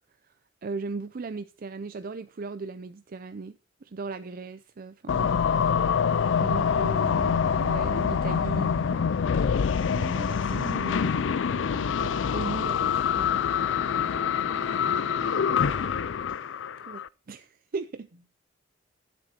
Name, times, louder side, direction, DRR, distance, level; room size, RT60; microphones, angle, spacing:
voice 1, 0.6-5.3 5.9-6.0 6.4-9.1 9.8-11.2 11.5-13.4 16.8-18.1, right 4 dB, 50° right, 0.5 m, -38 dB
sound 1, 5.1-17.1, left 7 dB, 70° left, 0.4 m, -25 dB
sound 2, 10.3-15.9, equal, 5° right, 0.9 m, -48 dB
voice 2, 14.0-16.1 18.1-18.3, equal, 75° right, 2.4 m, -55 dB
13.0 x 7.7 x 4.2 m
head